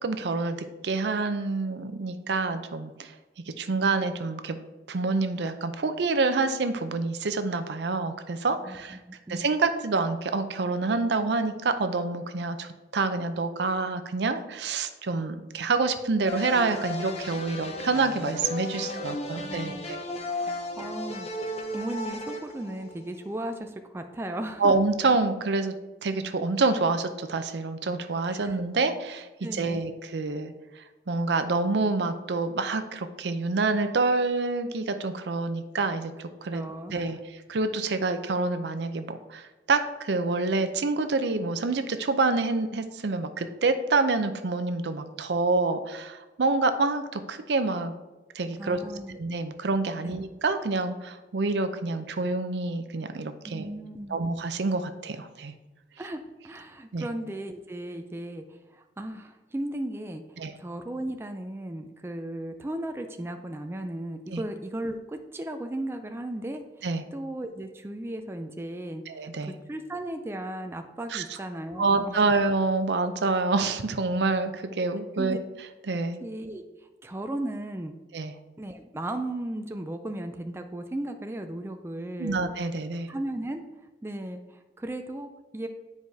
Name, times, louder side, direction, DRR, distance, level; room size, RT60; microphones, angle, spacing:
voice 1, 0.0-3.1 3.6-9.0 9.3-20.0 24.6-25.7 26.0-36.6 36.9-37.2 37.5-47.9 48.3-48.8 49.2-53.7 54.1-55.5 56.9-57.1 60.4-60.5 64.3-64.4 66.8-67.0 69.1-69.5 71.1-71.2 71.8-75.4 75.9-76.2 78.1-78.3 82.2-83.1, right 3 dB, 70° right, 9 dB, 0.5 m, -27 dB
voice 2, 8.6-9.5 18.7-19.0 19.3-19.8 20.3-24.8 28.3-28.6 29.4-29.8 36.5-37.2 48.6-49.2 50.0-50.2 53.4-54.2 56.0-72.3 75.1-75.4 76.2-78.0 78.6-82.4 83.1-83.6 84.0-85.7, right 1 dB, 15° right, 6 dB, 0.3 m, -36 dB
sound 1, 16.3-23.3, left 2 dB, 35° left, 0.7 m, -35 dB
9.7 x 4.7 x 2.7 m, 1.1 s
head